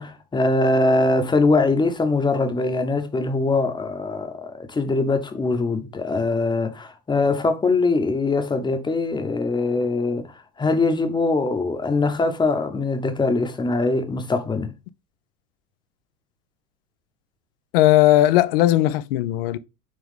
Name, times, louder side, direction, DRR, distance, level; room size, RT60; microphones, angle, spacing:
voice 1, 0.0-14.7, left 3 dB, 10° left, 0.9 m, -22 dB
voice 2, 17.7-19.6, left 14 dB, 40° left, 0.5 m, -17 dB
9.7 x 3.5 x 3.6 m
figure-of-eight pair, 85°, 50 cm